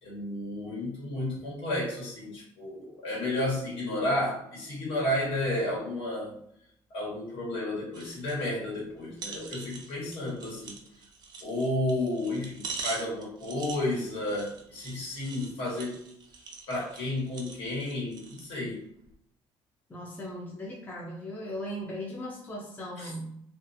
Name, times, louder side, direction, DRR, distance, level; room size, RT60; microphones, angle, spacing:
voice 1, 0.0-6.3 6.9-10.7 11.4-15.9 16.7-18.8 23.0-23.1, left 1 dB, 70° left, -5 dB, 1.3 m, -32 dB
sound 1, 7.9-8.4 8.7-8.8 9.2-18.5 19.0-19.1, right 4 dB, 45° right, 0.5 m, -43 dB
voice 2, 19.9-23.4, equal, 20° left, -2 dB, 0.5 m, -38 dB
2.4 x 2.3 x 2.5 m, 0.72 s
cardioid pair, 140°, 10 cm